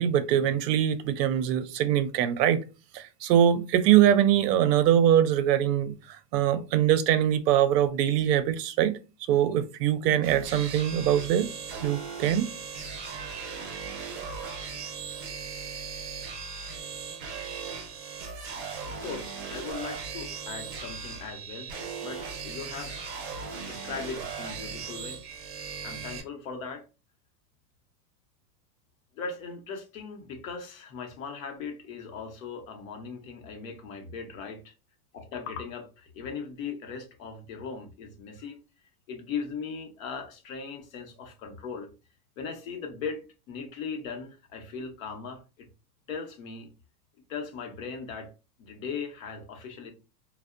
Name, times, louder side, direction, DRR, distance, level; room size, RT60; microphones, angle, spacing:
voice 1, 0.0-2.6 2.9-9.0 9.3-11.5 11.8-12.5, right 10 dB, 80° right, 0.5 m, -23 dB
sound 1, 10.2-26.2, right 5 dB, 40° right, 0.7 m, -38 dB
voice 2, 18.8-21.7 22.0-23.2 23.7-25.2 25.8-26.8 29.1-34.7 35.1-38.6 39.1-41.9 42.4-45.7 46.1-46.7 47.3-48.3 48.6-49.9, left 5 dB, 55° left, 0.7 m, -38 dB
2.6 x 2.0 x 2.4 m
supercardioid pair, 170°, 48 cm